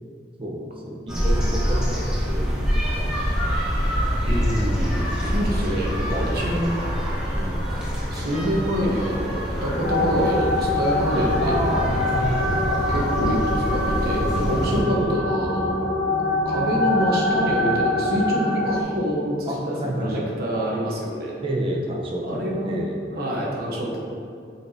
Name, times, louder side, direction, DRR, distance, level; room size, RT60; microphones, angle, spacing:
voice 1, 0.4-2.6 2.9-3.2 3.6-3.8 5.1-6.5 7.3-7.8 11.4-12.9 14.7-15.2 19.5-20.3 21.4-23.0, right 1 dB, 30° right, -1 dB, 0.8 m, -30 dB
sound 1, 1.1-14.8, equal, 5° right, 1.4 m, -25 dB
voice 2, 4.2-6.7 8.1-11.6 12.9-15.7 16.4-21.3 22.2-22.7 23.1-24.0, equal, 60° right, -3 dB, 1.2 m, -26 dB
sound 2, 9.8-18.8, left 2 dB, 55° left, 0.7 m, -24 dB
8.2 x 4.4 x 2.8 m, 2.3 s
head